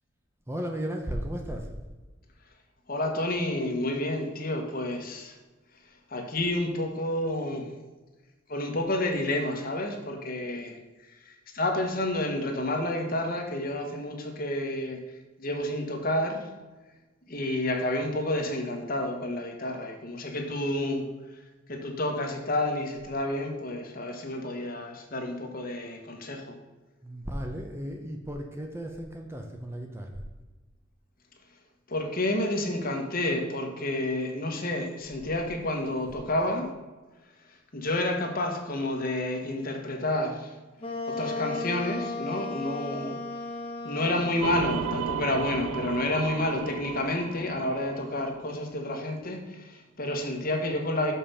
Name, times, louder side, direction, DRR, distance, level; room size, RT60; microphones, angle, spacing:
voice 1, 0.5-1.7 27.0-30.2 35.8-36.2, equal, 10° right, 3 dB, 0.7 m, -35 dB
voice 2, 2.9-5.3 6.1-7.7 8.5-10.8 11.2-15.0 15.4-16.5 17.3-21.1 21.7-26.6 31.9-36.7 37.7-40.5 41.1-43.2 43.8-51.1, left 1 dB, 45° left, 3 dB, 1.2 m, -30 dB
Wind instrument woodwind instrument, 40.8-48.2, left 3 dB, 25° left, 1.2 m, -37 dB
sound 1, 44.4-48.8, right 8 dB, 80° right, 0.4 m, -35 dB
6.6 x 5.6 x 5.5 m, 1.2 s
head